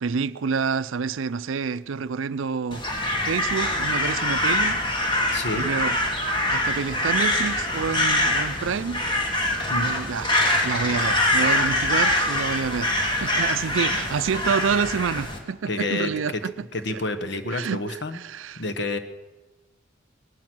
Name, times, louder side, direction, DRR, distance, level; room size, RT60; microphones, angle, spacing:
voice 1, 0.0-2.8 3.2-4.8 5.5-6.0 6.5-9.0 9.8-10.3 10.6-16.5 17.5-17.8 18.2-18.6, right 6 dB, 80° right, 0.5 m, -28 dB
Crow, 2.7-15.4, left 1 dB, 25° left, 1.7 m, -24 dB
voice 2, 5.3-5.7 9.7-9.9 15.7-16.4 16.7-18.3 18.6-19.0, left 2 dB, 60° left, 1.1 m, -29 dB
18.5 x 12.0 x 6.2 m
head